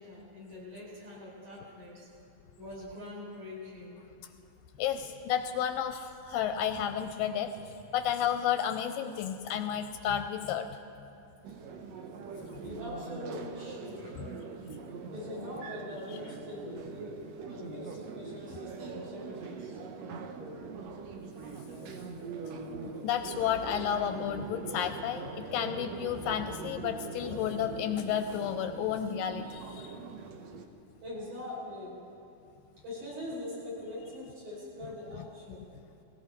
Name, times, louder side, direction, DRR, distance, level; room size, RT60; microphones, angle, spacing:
voice 1, 0.0-2.1 2.6-4.0 12.6-14.4 15.1-19.8 31.0-32.2 32.8-35.7, left 1 dB, 55° right, -6 dB, 5.8 m, -43 dB
voice 2, 4.8-7.5 7.9-10.7 22.8-30.0, left 9 dB, 80° left, 8 dB, 2.2 m, -32 dB
sound 1, 11.4-30.7, right 4 dB, 90° right, 1.5 m, -42 dB
19.0 x 16.5 x 4.4 m, 2.7 s
omnidirectional pair, 4.2 m